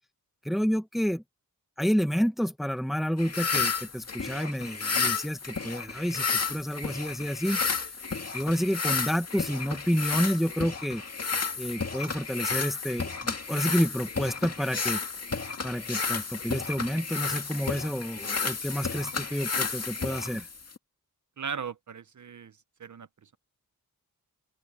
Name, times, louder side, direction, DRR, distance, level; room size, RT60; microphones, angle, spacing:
voice 1, 0.4-1.2 1.8-7.6 8.3-11.0 11.6-15.0 15.6-20.5, equal, ahead, 1.2 m, -29 dB
sound 1, 3.2-20.8, left 5 dB, 45° left, 2.0 m, -32 dB
voice 2, 21.4-22.5 22.8-23.4, right 6 dB, 55° right, 0.8 m, -38 dB
open air
wide cardioid pair, 120°, 35 cm